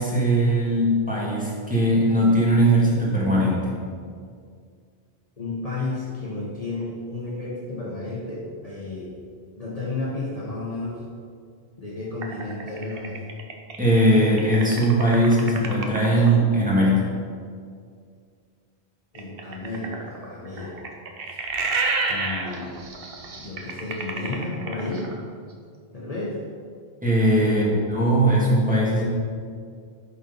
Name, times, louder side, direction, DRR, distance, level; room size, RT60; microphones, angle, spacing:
voice 1, 0.0-3.7 13.8-17.0 27.0-29.0, right 1 dB, 5° right, -7 dB, 2.1 m, -20 dB
voice 2, 5.4-9.2 9.6-11.0 11.8-13.2 19.1-20.8 21.2-21.4 22.1-22.8 23.4-25.1 25.9-26.4 27.4-27.9, left 2 dB, 35° left, -6 dB, 1.2 m, -32 dB
sound 1, 12.2-16.3 19.1-25.2, right 4 dB, 65° right, 1.1 m, -30 dB
10.5 x 4.3 x 5.5 m, 2.1 s
omnidirectional pair, 1.1 m